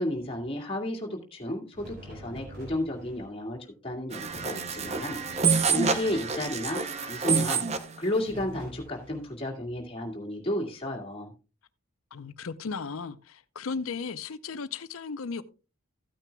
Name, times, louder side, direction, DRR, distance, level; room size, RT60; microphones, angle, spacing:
voice 1, 0.0-11.3, left 1 dB, 25° left, 2.1 m, -33 dB
sound 1, 1.7-3.3 4.2-6.8 8.2-9.3, right 1 dB, 45° right, 6.0 m, -46 dB
sound 2, 4.1-7.9, right 5 dB, 30° right, 0.7 m, -27 dB
voice 2, 12.1-15.4, left 5 dB, 70° left, 0.6 m, -35 dB
15.0 x 9.0 x 2.3 m
head